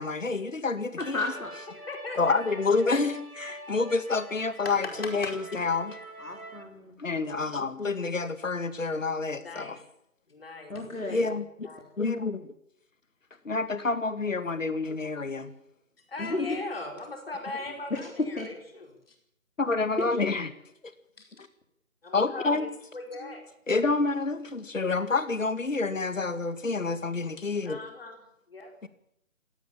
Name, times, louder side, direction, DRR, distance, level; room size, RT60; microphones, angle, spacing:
voice 1, 0.0-1.3 2.2-6.0 7.0-9.8 11.1-11.7 12.0-12.5 13.4-15.5 19.6-20.5 22.1-22.7 23.7-27.8 28.8-28.9, left 3 dB, 65° left, 12 dB, 2.2 m, -28 dB
voice 2, 1.0-1.5 6.2-7.0 10.7-11.3 16.2-16.6 18.4-18.5 20.0-20.3, left 2 dB, 85° left, 2 dB, 4.3 m, -33 dB
sound 1, 1.0-6.6, right 1 dB, 85° right, 3.4 m, -44 dB
voice 3, 1.7-3.0 3.7-3.8 4.6-5.3 9.3-9.8 10.3-10.8 11.6-11.9 16.0-19.1 21.2-21.3 22.0-23.4 27.6-28.2 28.5-28.9, left 2 dB, 45° left, 4 dB, 4.9 m, -40 dB
21.0 x 17.5 x 7.4 m, 0.76 s
figure-of-eight pair, 165°, 41 cm